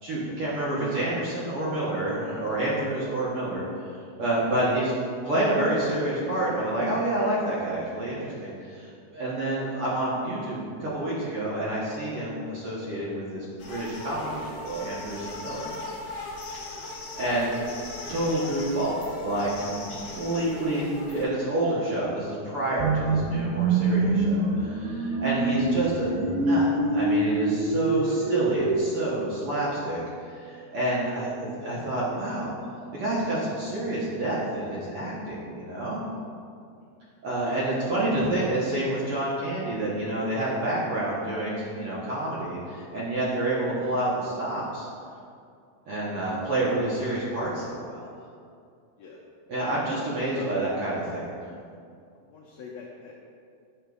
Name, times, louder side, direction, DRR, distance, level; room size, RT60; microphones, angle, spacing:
voice 1, 0.0-3.6 4.2-4.9 5.2-15.7 17.1-17.6 18.1-30.0 30.3-32.5 32.9-36.0 37.2-44.9 45.9-48.1 49.5-51.3, right 1 dB, 60° right, -7 dB, 1.5 m, -28 dB
sound 1, 13.6-21.2, left 2 dB, 65° left, 2.1 m, -39 dB
sound 2, 22.8-28.8, right 2 dB, 80° right, 2.1 m, -25 dB
voice 2, 52.3-53.2, left 6 dB, 85° left, -4 dB, 1.5 m, -42 dB
9.2 x 6.3 x 2.3 m, 2.3 s
omnidirectional pair, 3.6 m